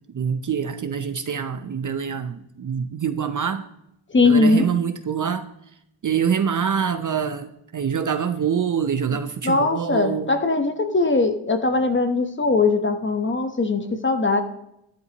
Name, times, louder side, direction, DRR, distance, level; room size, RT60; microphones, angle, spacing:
voice 1, 0.1-3.7 4.2-5.5 6.0-10.3, right 7 dB, 40° right, 9 dB, 0.7 m, -25 dB
voice 2, 4.1-4.7 9.4-14.4, left 3 dB, 25° left, 7 dB, 1.0 m, -20 dB
13.5 x 11.0 x 3.0 m, 0.78 s
wide cardioid pair, 150°, 49 cm